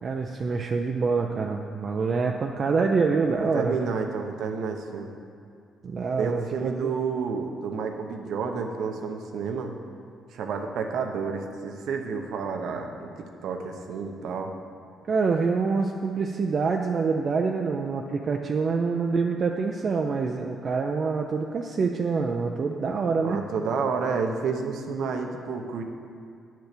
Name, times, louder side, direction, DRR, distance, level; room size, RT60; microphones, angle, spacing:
voice 1, 0.0-3.8 5.8-6.9 15.1-23.4, right 4 dB, 50° right, 2 dB, 0.5 m, -26 dB
voice 2, 3.3-5.1 6.2-9.7 10.3-14.5 23.2-25.8, right 5 dB, 75° right, 3 dB, 0.9 m, -30 dB
9.2 x 4.5 x 6.7 m, 2.4 s
cardioid pair, 90°, 0 cm